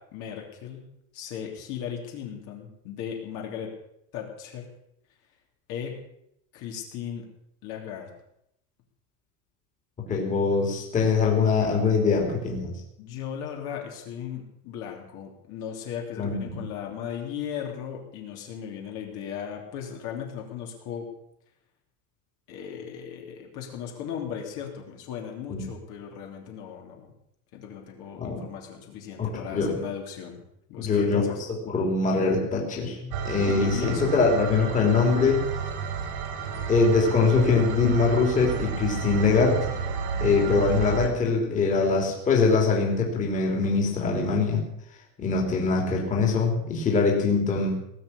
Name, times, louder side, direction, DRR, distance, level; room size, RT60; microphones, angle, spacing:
voice 1, 0.1-0.9 1.1-3.7 4.1-4.7 5.7-6.0 6.5-7.3 7.6-8.1 13.0-21.1 22.5-27.1 27.5-30.4 30.7-31.4 33.5-34.3 40.2-40.6, left 8 dB, 45° left, 1 dB, 3.1 m, -36 dB
voice 2, 10.1-12.7 16.2-16.6 25.5-25.6 28.2-28.4 29.2-29.8 30.8-31.2 31.6-35.4 36.7-39.7 40.2-44.6 45.2-47.8, left 4 dB, 15° left, -1 dB, 3.1 m, -23 dB
sound 1, 33.1-41.1, right 6 dB, 80° right, 4.0 m, -31 dB
19.0 x 7.7 x 9.9 m, 0.77 s
cardioid pair, 180°, 44 cm